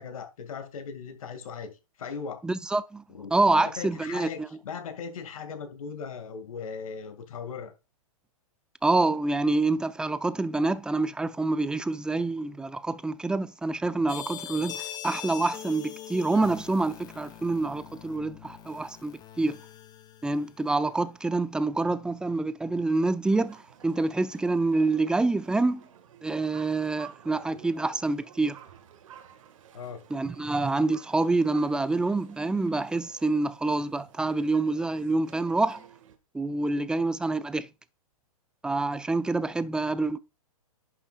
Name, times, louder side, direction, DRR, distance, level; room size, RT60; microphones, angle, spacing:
voice 1, 0.0-2.4 3.1-7.7 29.7-30.0, left 6 dB, 70° left, 2.1 m, -38 dB
voice 2, 2.4-3.0 3.3-4.5 8.8-19.6 20.2-25.8 26.2-28.6 30.1-35.9 36.3-37.7 38.6-40.2, right 3 dB, 5° right, 0.5 m, -27 dB
sound 1, 14.1-20.8, left 10 dB, 20° left, 1.2 m, -42 dB
sound 2, 23.2-36.2, right 9 dB, 60° right, 1.8 m, -52 dB
11.0 x 6.6 x 2.4 m
hypercardioid pair, 125°, 19 cm